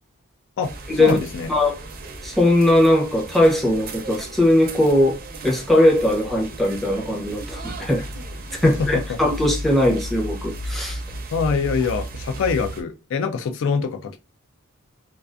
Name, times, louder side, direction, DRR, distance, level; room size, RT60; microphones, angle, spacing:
voice 1, 0.6-1.5 8.6-9.2 11.3-14.2, left 5 dB, 60° left, 0.3 m, -24 dB
sound 1, 0.6-12.8, right 1 dB, 40° right, 0.5 m, -34 dB
voice 2, 2.2-5.2 5.4-8.1 8.6-11.0, left 1 dB, ahead, 0.6 m, -19 dB
2.3 x 2.3 x 2.4 m
head